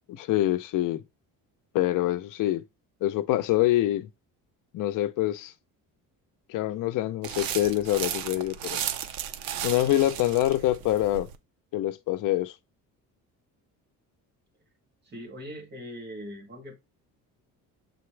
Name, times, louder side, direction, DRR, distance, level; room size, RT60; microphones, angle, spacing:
voice 1, 0.1-1.0 1.7-2.6 3.0-4.1 4.7-5.5 6.5-8.8 9.6-11.3 11.7-12.5, left 14 dB, 65° left, 0.7 m, -25 dB
sound 1, 7.2-11.4, right 10 dB, 80° right, 0.8 m, -35 dB
voice 2, 15.0-16.8, equal, 30° right, 2.3 m, -41 dB
6.9 x 4.2 x 3.3 m
cardioid pair, 160°, 35 cm